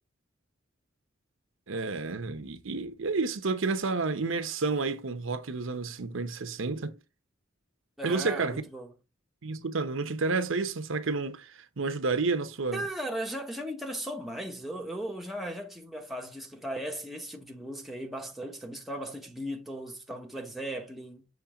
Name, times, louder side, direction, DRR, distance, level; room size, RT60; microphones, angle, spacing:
voice 1, 1.7-7.0 8.0-8.6 9.4-12.9, right 4 dB, 70° right, 0.8 m, -30 dB
voice 2, 8.0-8.9 12.7-21.3, right 1 dB, ahead, 0.9 m, -37 dB
7.2 x 3.2 x 4.9 m
head